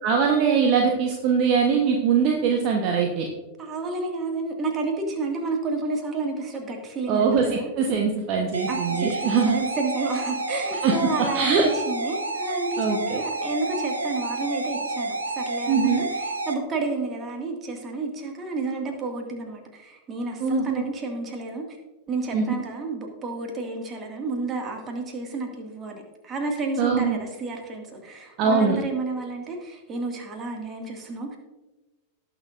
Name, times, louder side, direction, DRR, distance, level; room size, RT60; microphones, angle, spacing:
voice 1, 0.0-3.3 7.1-9.6 10.8-11.6 12.8-13.2 15.7-16.0 20.4-20.8 22.3-22.5 26.8-27.2 28.4-28.8, right 5 dB, 40° right, 1 dB, 1.1 m, -22 dB
voice 2, 3.6-7.7 8.7-21.7 22.1-31.4, right 3 dB, 25° right, 2 dB, 2.0 m, -31 dB
sound 1, 8.5-16.5, right 2 dB, 75° right, 0.9 m, -29 dB
18.0 x 6.8 x 2.6 m, 1.1 s
figure-of-eight pair, 90°, 0 cm